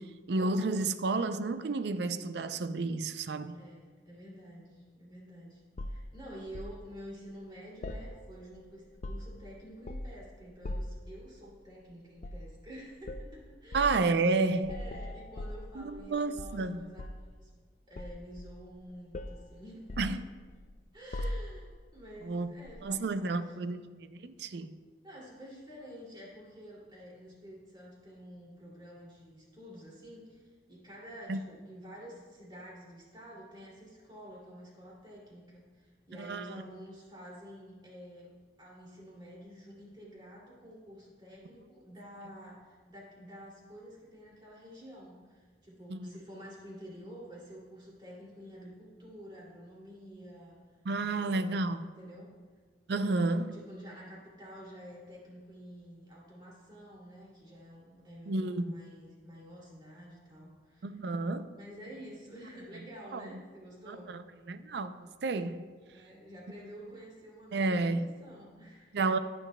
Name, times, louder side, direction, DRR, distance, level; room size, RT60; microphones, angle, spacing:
voice 1, 0.0-3.6 13.7-14.7 15.8-16.9 20.0-20.2 22.2-22.5 22.8-23.8 24.1-24.8 31.3-31.4 36.2-36.6 45.9-46.1 50.9-51.9 52.9-53.5 58.3-58.7 60.8-61.6 63.1-63.4 63.9-64.2 64.5-65.7 67.5-68.1 68.9-69.2, right 3 dB, 65° right, 0.4 m, -31 dB
voice 2, 3.5-13.8 14.7-17.5 17.9-20.2 20.9-23.6 25.0-38.3 38.6-50.6 51.0-51.6 52.0-52.3 53.0-60.9 61.6-64.1 65.9-69.0, equal, 25° right, 2.5 m, -49 dB
sound 1, 5.8-6.8 7.8-8.6 8.8-9.4 9.9-10.2 10.6-11.1 12.2-12.5 13.0-13.3 13.7-14.0 14.6-16.1 16.4-17.3 18.0-18.8 19.1-19.4 19.9-20.7 21.1-21.7 22.7-22.8, left 1 dB, 40° left, 0.4 m, -40 dB
10.5 x 9.8 x 2.2 m
head